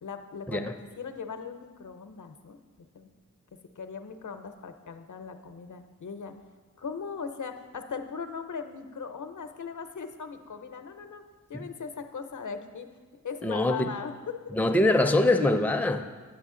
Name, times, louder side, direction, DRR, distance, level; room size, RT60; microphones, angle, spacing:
voice 1, 0.0-2.6 2.9-3.1 3.8-6.3 6.8-11.2 11.5-14.4, left 5 dB, 70° left, 7 dB, 0.6 m, -39 dB
voice 2, 13.4-14.0 14.5-16.1, left 2 dB, 5° left, 6 dB, 0.5 m, -24 dB
9.9 x 6.9 x 3.7 m, 1.4 s
wide cardioid pair, 65°, 32 cm